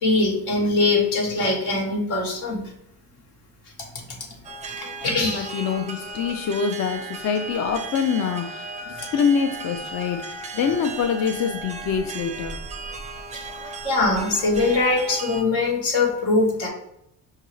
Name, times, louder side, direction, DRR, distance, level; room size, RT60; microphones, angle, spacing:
voice 1, 0.0-2.6 4.6-5.5 13.3-13.5 13.8-16.7, left 3 dB, 75° left, 0 dB, 1.5 m, -22 dB
sound 1, 4.4-15.4, right 3 dB, 20° right, 0.4 m, -36 dB
voice 2, 5.3-12.6, left 6 dB, 45° left, 5 dB, 0.5 m, -25 dB
5.5 x 2.3 x 3.1 m, 0.78 s
cardioid pair, 90°, 40 cm